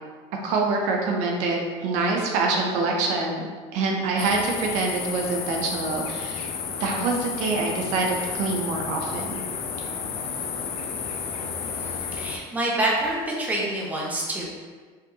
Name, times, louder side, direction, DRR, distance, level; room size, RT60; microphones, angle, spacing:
voice 1, 0.4-6.5 6.8-9.4, right 3 dB, 70° right, 0 dB, 0.6 m, -25 dB
sound 1, 4.2-12.4, left 6 dB, 50° left, 0.5 m, -32 dB
voice 2, 11.7-14.4, right 1 dB, 10° right, -4 dB, 0.9 m, -27 dB
4.9 x 2.6 x 2.7 m, 1.5 s
cardioid pair, 125°, 13 cm